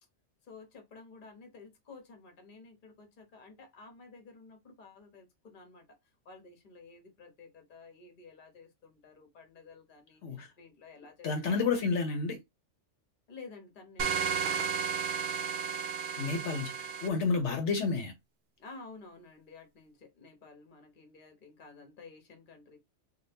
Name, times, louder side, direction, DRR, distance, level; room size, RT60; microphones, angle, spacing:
voice 1, 0.4-6.0 6.2-11.7 13.3-14.9 18.6-22.8, left 4 dB, 45° left, 1.0 m, -52 dB
voice 2, 11.2-12.4 16.2-18.1, left 4 dB, 70° left, 1.0 m, -30 dB
sound 1, 14.0-17.1, right 6 dB, 60° right, 0.6 m, -33 dB
2.7 x 2.4 x 3.3 m
omnidirectional pair, 1.2 m